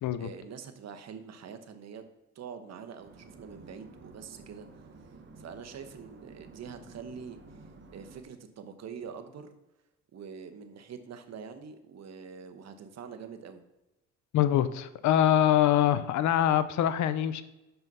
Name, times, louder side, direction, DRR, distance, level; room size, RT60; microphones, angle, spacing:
voice 1, 0.2-2.0 2.3-4.9 5.4-7.4 7.9-9.5 10.1-13.6, right 6 dB, 60° right, 8 dB, 1.0 m, -44 dB
sound 1, 3.0-8.2, right 3 dB, 40° right, 1.2 m, -52 dB
voice 2, 14.3-17.4, left 11 dB, 70° left, 14 dB, 0.6 m, -24 dB
5.9 x 5.6 x 5.4 m, 0.97 s
cardioid pair, 90°, 30 cm